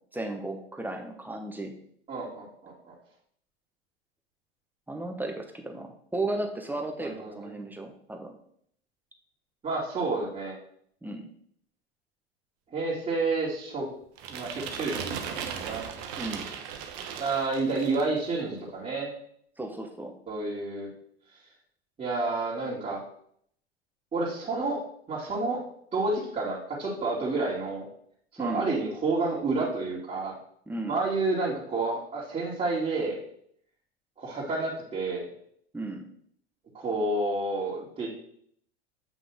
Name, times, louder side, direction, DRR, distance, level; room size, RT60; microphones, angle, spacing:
voice 1, 0.1-1.7 4.9-8.3 11.0-11.3 16.2-16.4 19.6-20.1 28.4-28.7 30.7-30.9 35.7-36.0, right 2 dB, 5° right, 4 dB, 1.1 m, -34 dB
voice 2, 2.1-2.9 7.0-7.5 9.6-10.6 12.7-13.9 14.3-15.8 17.2-19.1 20.3-20.9 22.0-23.0 24.1-24.8 25.1-25.6 25.9-27.9 28.4-30.3 30.9-33.2 34.2-35.3 36.7-38.1, right 3 dB, 20° right, -9 dB, 2.5 m, -30 dB
sound 1, 14.2-18.2, right 7 dB, 50° right, 1.1 m, -37 dB
7.9 x 5.7 x 3.5 m, 0.66 s
figure-of-eight pair, 80°, 32 cm